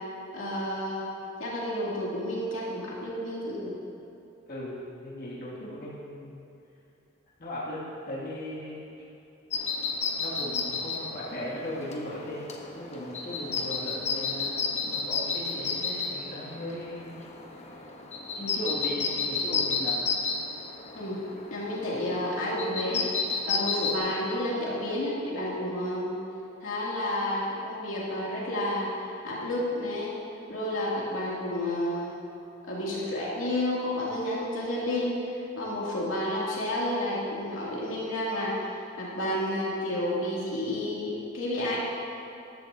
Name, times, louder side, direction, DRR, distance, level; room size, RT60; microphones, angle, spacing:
voice 1, 0.3-1.1 1.4-3.7 21.0-21.2 21.5-23.0 23.5-26.2 26.6-30.1 30.5-32.2 32.6-35.3 35.6-41.8, left 1 dB, 85° left, -6 dB, 2.6 m, -30 dB
voice 2, 4.5-6.4 7.4-8.8 10.2-12.4 12.7-17.2 18.3-20.0, left 1 dB, 50° left, -7 dB, 2.3 m, -37 dB
sound 1, 9.5-23.9, left 4 dB, 35° left, 1.0 m, -32 dB
14.5 x 11.5 x 2.8 m, 2.8 s
head